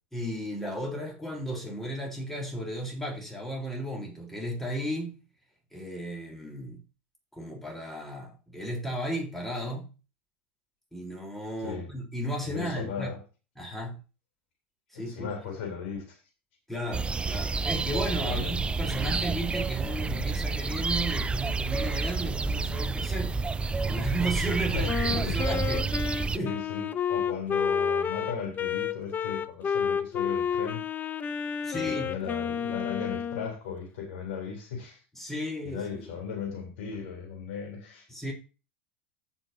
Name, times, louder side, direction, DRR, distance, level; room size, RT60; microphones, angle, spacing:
voice 1, 0.1-5.2 5.7-6.8 7.3-9.9 10.9-13.1 13.6-14.0 14.9-15.3 16.7-23.4 23.8-25.9 26.2-26.5 31.6-32.1 35.2-36.1 38.1-38.3, equal, 5° left, 4.0 m, -34 dB
voice 2, 12.4-13.2 14.9-16.0 18.2-18.6 24.7-25.4 26.3-30.8 31.7-35.0 35.6-38.1, left 6 dB, 70° left, 3.6 m, -37 dB
sound 1, 16.9-26.4, right 4 dB, 15° right, 0.5 m, -29 dB
Wind instrument woodwind instrument, 24.9-33.5, left 7 dB, 25° left, 0.7 m, -30 dB
14.5 x 5.7 x 2.8 m
hypercardioid pair, 90°, 7 cm